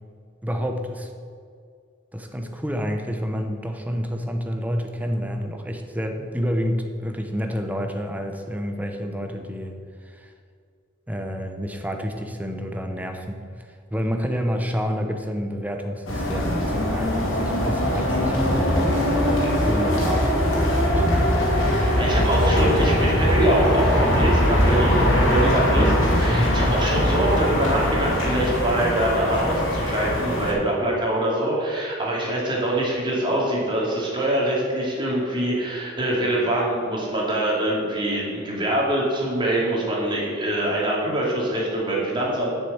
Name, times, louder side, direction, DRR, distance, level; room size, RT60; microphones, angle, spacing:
voice 1, 0.4-1.1 2.1-9.7 10.0-10.3 11.1-13.4 13.9-21.1 26.3-26.6, equal, 10° right, 4 dB, 0.8 m, -29 dB
sound 1, 16.1-30.5, equal, 75° left, 2.6 m, -21 dB
voice 2, 21.6-42.6, right 1 dB, 25° right, -4 dB, 2.6 m, -24 dB
7.7 x 6.4 x 7.9 m, 2.2 s
head